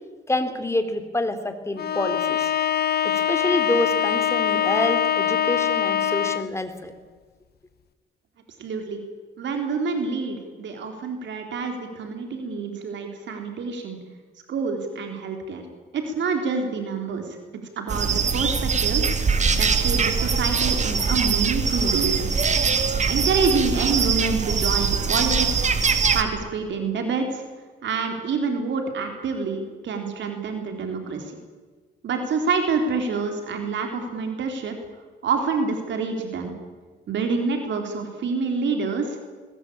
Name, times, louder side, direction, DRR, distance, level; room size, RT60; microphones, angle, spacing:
voice 1, 0.3-2.5 3.0-6.9, left 1 dB, 15° left, 8 dB, 3.3 m, -27 dB
Bowed string instrument, 1.8-6.6, left 9 dB, 55° left, 1.0 m, -23 dB
voice 2, 8.6-9.0 9.4-14.0 14.5-15.6 15.9-17.4 17.8-22.3 23.1-25.7 26.1-27.4 27.8-31.3 32.0-34.7 35.2-36.5 37.1-39.2, right 4 dB, 65° right, 4 dB, 4.0 m, -27 dB
sound 1, 17.9-26.2, right 5 dB, 35° right, 2.3 m, -22 dB
21.0 x 20.5 x 8.7 m, 1.4 s
cardioid pair, 90°, 20 cm